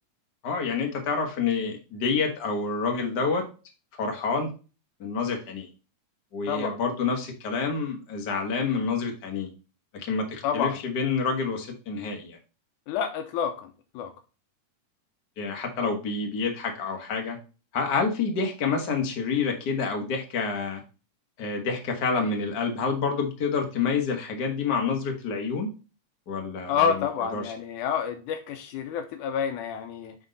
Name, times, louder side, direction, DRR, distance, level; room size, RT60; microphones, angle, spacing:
voice 1, 0.4-3.4 4.0-4.5 5.0-5.7 6.3-9.5 9.9-12.4 15.4-17.4 17.7-20.8 21.4-25.7 26.3-27.1 27.3-27.4, left 5 dB, 45° left, 2 dB, 1.6 m, -28 dB
voice 2, 6.5-6.8 10.4-10.8 12.9-14.1 26.7-30.2, left 7 dB, 85° left, 6 dB, 2.3 m, -28 dB
9.4 x 3.6 x 4.0 m, 0.33 s
omnidirectional pair, 3.5 m